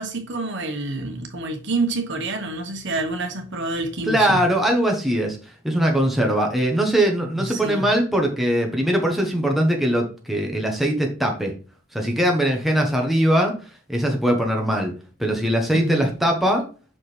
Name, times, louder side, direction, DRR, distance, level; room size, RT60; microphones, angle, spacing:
voice 1, 0.0-4.4 7.4-7.9 15.7-16.1, right 2 dB, 60° right, 1.2 m, -27 dB
voice 2, 4.1-5.4 5.6-11.5 11.9-13.5 13.9-14.9 15.2-16.6, right 1 dB, ahead, 1.1 m, -21 dB
5.9 x 5.0 x 3.3 m
head